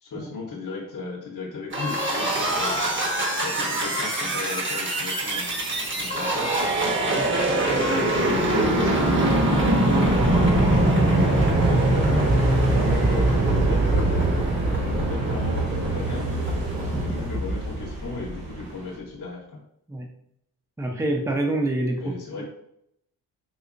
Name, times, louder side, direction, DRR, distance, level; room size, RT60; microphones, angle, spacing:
voice 1, 0.0-2.8 3.4-5.5 5.8-6.5 8.0-12.2 13.0-16.3 17.0-19.6 21.9-22.5, left 4 dB, 45° left, -3 dB, 0.9 m, -36 dB
sound 1, 1.7-18.3, right 1 dB, 30° right, 1.0 m, -22 dB
sound 2, 5.3-19.0, right 2 dB, 85° right, 1.0 m, -38 dB
voice 2, 20.8-22.1, right 1 dB, 5° right, 2 dB, 0.6 m, -27 dB
3.8 x 2.7 x 2.5 m, 0.75 s
supercardioid pair, 65°, 42 cm